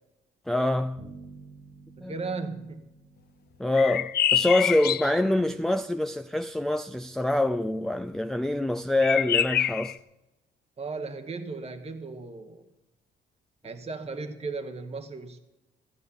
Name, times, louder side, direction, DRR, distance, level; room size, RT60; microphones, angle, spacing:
voice 1, 0.5-1.0 2.0-2.1 3.6-10.0, left 2 dB, ahead, 0.4 m, -25 dB
sound 1, 1.0-4.7, right 3 dB, 80° right, 3.5 m, -50 dB
voice 2, 2.0-2.9 10.8-12.7 13.6-15.4, right 4 dB, 30° right, 1.1 m, -36 dB
sound 2, 3.7-5.2 9.0-10.0, left 10 dB, 55° left, 0.5 m, -26 dB
15.5 x 8.0 x 7.0 m
cardioid pair, 90°, 20 cm